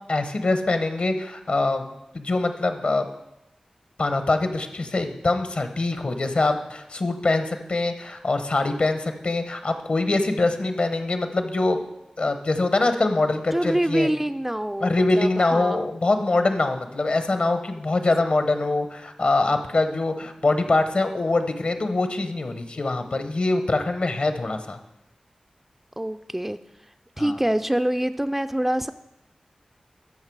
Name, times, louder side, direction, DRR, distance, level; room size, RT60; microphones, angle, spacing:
voice 1, 0.1-1.8 2.1-3.1 4.0-11.8 12.2-14.1 14.8-24.8 27.2-27.3, left 2 dB, 65° left, 8 dB, 0.9 m, -24 dB
voice 2, 13.5-15.9 26.0-26.6 27.2-28.9, right 1 dB, 10° right, 9 dB, 0.3 m, -25 dB
13.0 x 5.7 x 4.7 m, 0.87 s
wide cardioid pair, 65°, 2 cm